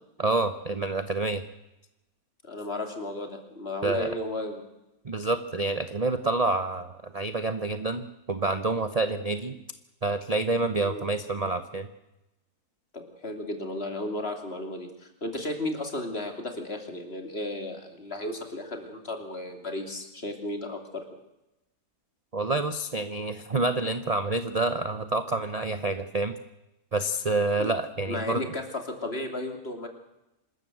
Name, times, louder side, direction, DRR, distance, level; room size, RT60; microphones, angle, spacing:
voice 1, 0.2-1.4 3.8-4.1 5.0-9.6 10.0-11.9 22.3-26.4 26.9-28.4, right 3 dB, 30° right, 10 dB, 0.8 m, -28 dB
voice 2, 2.4-4.6 10.8-11.1 12.9-21.0 27.6-27.7 28.1-29.9, left 1 dB, 40° left, 5 dB, 3.1 m, -34 dB
26.0 x 13.5 x 7.8 m, 0.92 s
omnidirectional pair, 1.6 m